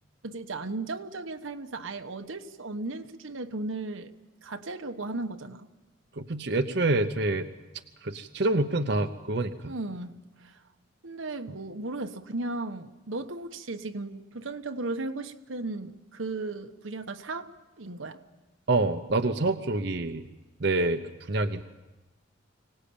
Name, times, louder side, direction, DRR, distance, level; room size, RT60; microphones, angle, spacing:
voice 1, 0.2-4.1 4.4-5.7 9.7-10.6 11.0-17.5 17.8-18.2, right 2 dB, 85° right, 7 dB, 1.2 m, -36 dB
voice 2, 6.2-7.5 8.0-9.7 18.7-20.3 20.6-21.6, right 2 dB, 55° right, 7 dB, 0.8 m, -27 dB
24.5 x 18.5 x 8.7 m, 1.1 s
head